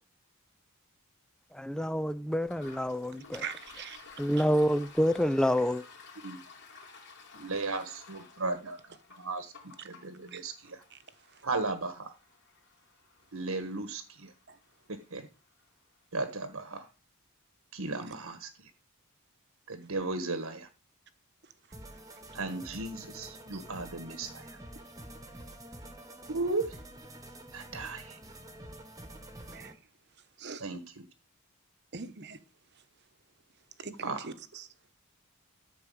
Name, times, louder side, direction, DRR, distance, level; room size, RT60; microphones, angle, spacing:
voice 1, 1.5-3.4 4.2-5.8, equal, 5° left, 0.4 m, -27 dB
Toilet flush, 2.4-15.8, left 4 dB, 50° left, 3.5 m, -54 dB
voice 2, 3.3-4.0 10.3-10.4 14.5-14.6 23.5-23.6 29.5-29.7 30.4-30.6 31.9-32.4 33.8-34.7, right 5 dB, 50° right, 1.1 m, -41 dB
voice 3, 7.3-10.8 11.4-12.1 13.3-14.3 14.9-15.3 16.1-16.9 17.7-18.7 19.7-20.7 22.3-24.6 26.3-26.8 27.5-28.2 30.6-31.1 34.0-34.3, right 3 dB, 70° right, 1.3 m, -36 dB
sound 1, 21.7-29.7, right 1 dB, 15° right, 1.4 m, -48 dB
13.5 x 4.6 x 7.8 m
head